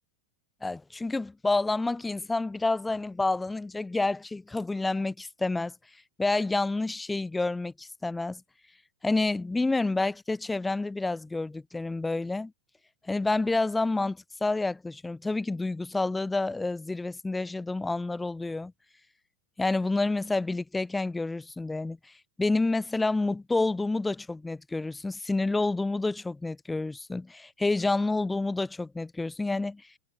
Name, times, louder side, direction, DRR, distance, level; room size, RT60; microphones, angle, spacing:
voice 1, 0.6-5.7 6.2-8.4 9.0-12.5 13.0-18.7 19.6-22.0 22.4-29.8, left 2 dB, 10° left, 0.3 m, -29 dB
figure-of-eight pair, 90°, 0 cm